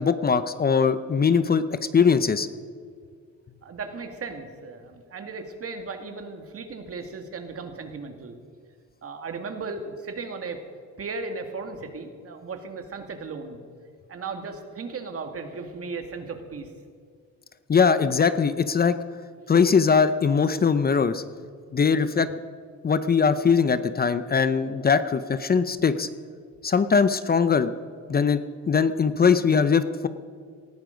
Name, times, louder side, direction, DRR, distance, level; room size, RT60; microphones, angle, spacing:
voice 1, 0.0-1.6 1.9-2.5 17.7-19.0 19.5-21.2 21.7-22.3 22.8-26.1 26.6-27.7 28.1-28.4 28.7-30.1, left 6 dB, 30° left, 12 dB, 0.7 m, -21 dB
voice 2, 3.6-8.4 9.0-10.6 11.0-13.6 14.1-16.7, right 4 dB, 50° right, 6 dB, 2.2 m, -36 dB
19.0 x 13.5 x 5.2 m, 2.1 s
cardioid pair, 90°, 30 cm